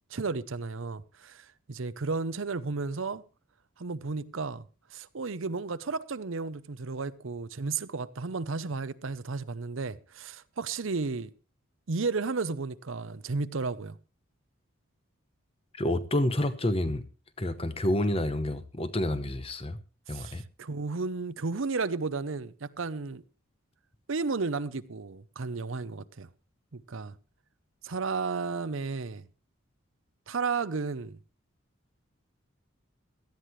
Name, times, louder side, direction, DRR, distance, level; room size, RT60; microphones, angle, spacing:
voice 1, 0.1-3.2 3.8-4.6 4.9-11.3 11.9-14.0 20.1-23.2 24.1-26.3 26.7-27.1 27.8-29.3 30.3-31.2, right 4 dB, 70° right, 0.7 m, -33 dB
voice 2, 15.8-17.0 17.4-19.8 20.1-20.4, left 1 dB, 25° left, 1.0 m, -28 dB
17.5 x 13.0 x 3.1 m
head